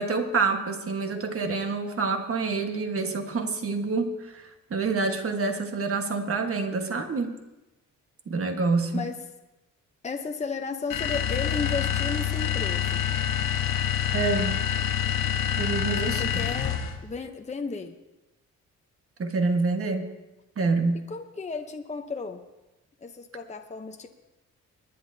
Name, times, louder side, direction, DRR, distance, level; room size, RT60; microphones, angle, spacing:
voice 1, 0.0-7.4 8.3-9.1 14.1-14.6 15.6-16.2 19.2-20.1 20.6-21.0, right 4 dB, 45° right, 5 dB, 1.4 m, -27 dB
voice 2, 10.0-13.0 15.8-17.9 21.1-22.4 23.0-24.1, left 4 dB, 20° left, 5 dB, 0.8 m, -34 dB
sound 1, 10.9-17.0, left 9 dB, 90° left, 1.2 m, -27 dB
24.5 x 10.5 x 2.8 m, 1.0 s
cardioid pair, 115°, 31 cm